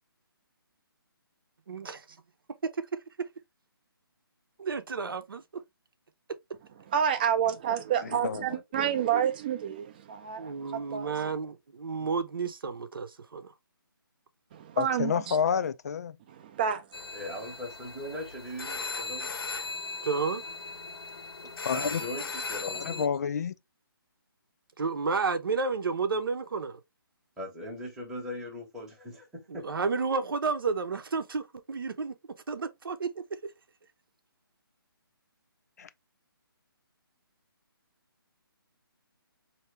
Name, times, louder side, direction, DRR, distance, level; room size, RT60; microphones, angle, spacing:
voice 1, 1.7-2.2 4.6-5.6 10.4-13.5 20.0-20.4 24.8-26.8 29.5-32.1 32.5-33.2, right 4 dB, 65° right, 0.8 m, -31 dB
voice 2, 6.9-11.3 14.5-15.4 16.3-16.9, right 9 dB, 25° right, 0.5 m, -29 dB
voice 3, 14.8-16.2 21.6-22.0 22.7-23.6 35.8-35.9, left 7 dB, 45° left, 0.4 m, -29 dB
sound 1, 16.9-23.1, left 3 dB, 75° left, 1.0 m, -38 dB
voice 4, 17.1-19.4 21.4-23.0 27.4-29.7, left 1 dB, 5° right, 0.9 m, -40 dB
4.5 x 2.8 x 3.3 m
hypercardioid pair, 160°, 13 cm